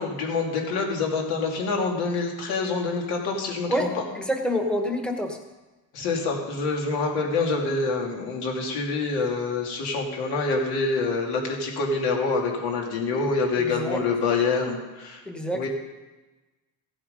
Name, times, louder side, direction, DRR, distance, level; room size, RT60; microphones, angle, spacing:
voice 1, 0.0-4.0 5.9-15.2 15.5-15.7, left 4 dB, 75° left, 0 dB, 2.7 m, -26 dB
voice 2, 4.1-5.4 13.5-14.0 15.2-15.6, equal, ahead, 3 dB, 1.2 m, -27 dB
16.0 x 7.9 x 5.4 m, 1.1 s
cardioid pair, 155°, 38 cm